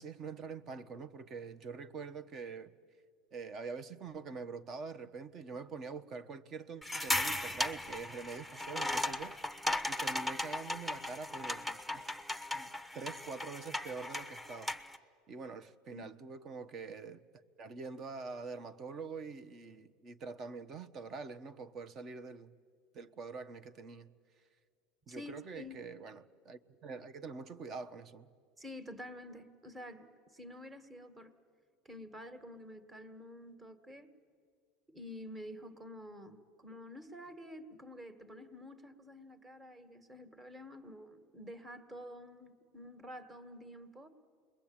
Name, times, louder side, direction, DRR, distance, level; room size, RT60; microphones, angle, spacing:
voice 1, 0.0-2.7 3.3-12.1 12.5-14.8 15.3-17.2 17.6-22.5 22.9-24.1 25.1-28.3, right 4 dB, 40° right, 1.1 m, -45 dB
sound 1, 6.8-15.0, left 1 dB, 5° right, 1.0 m, -37 dB
voice 2, 25.1-25.8 28.6-31.3 31.9-34.1 34.9-44.1, left 1 dB, 20° right, 1.9 m, -49 dB
28.5 x 22.0 x 8.9 m
supercardioid pair, 110°, 0 cm